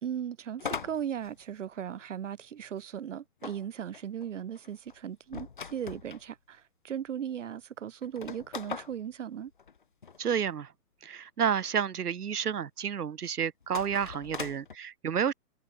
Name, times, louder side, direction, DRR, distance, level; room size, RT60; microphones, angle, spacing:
voice 1, 0.0-9.5, right 9 dB, 50° right, 2.1 m, -37 dB
sound 1, 0.6-2.1 3.4-6.3 7.0-7.1 7.3-7.4 8.0-10.2 13.6-14.8, left 6 dB, 35° left, 0.6 m, -41 dB
voice 2, 10.2-10.7 11.0-15.3, right 8 dB, 70° right, 2.5 m, -30 dB
hypercardioid pair, 170°, 47 cm